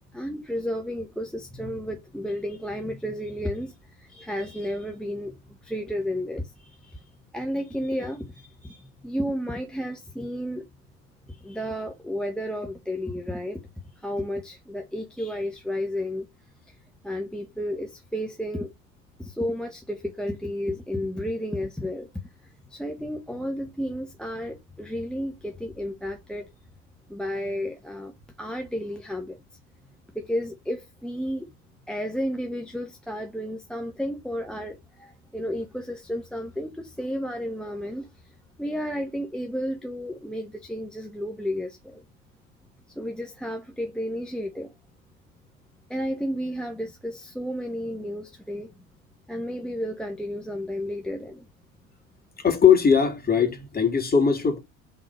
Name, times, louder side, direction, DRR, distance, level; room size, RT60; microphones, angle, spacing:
voice 1, 0.1-7.0 7.3-10.7 11.3-13.6 13.9-16.3 16.7-16.8 17.0-18.7 19.2-22.1 22.7-26.5 27.1-29.4 30.1-31.5 31.9-42.0 42.9-44.7 45.9-48.7 49.3-51.4, equal, ahead, 0.9 m, -32 dB
voice 2, 52.4-54.6, left 7 dB, 20° left, 2.3 m, -20 dB
4.6 x 3.9 x 5.3 m
figure-of-eight pair, 65°, 41 cm